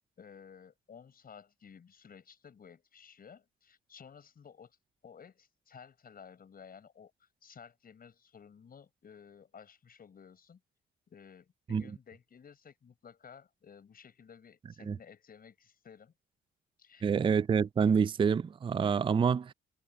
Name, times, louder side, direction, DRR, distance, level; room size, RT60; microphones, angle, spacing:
voice 1, 0.2-4.8 5.0-10.6 11.1-16.1 16.8-17.2, left 7 dB, 50° left, 7.4 m, -54 dB
voice 2, 17.0-19.5, right 6 dB, 25° right, 0.4 m, -27 dB
cardioid pair, 90°, 20 cm